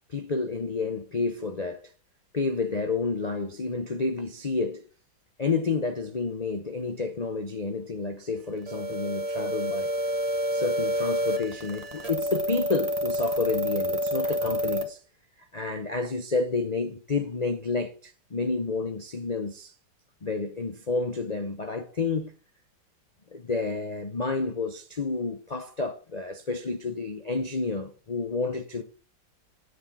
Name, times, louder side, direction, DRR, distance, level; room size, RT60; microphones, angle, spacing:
voice 1, 0.1-1.9 2.3-4.8 5.4-9.9 10.5-15.0 15.5-19.7 20.2-22.4 23.3-28.8, left 4 dB, 60° left, 0.4 m, -30 dB
sound 1, 8.7-14.8, equal, 20° right, 1.3 m, -28 dB
9.5 x 8.0 x 4.1 m
omnidirectional pair, 2.0 m